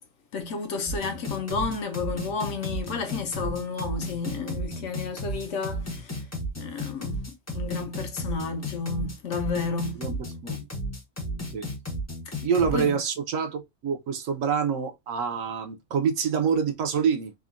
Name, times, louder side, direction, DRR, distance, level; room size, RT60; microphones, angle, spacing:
voice 1, 0.3-6.3 6.6-10.0 12.3-12.4 12.7-13.0, left 4 dB, 65° left, 0.8 m, -31 dB
sound 1, 0.9-12.9, equal, 20° left, 0.4 m, -33 dB
voice 2, 12.4-17.3, right 6 dB, 70° right, 1.0 m, -26 dB
3.6 x 2.1 x 2.3 m
omnidirectional pair, 1.5 m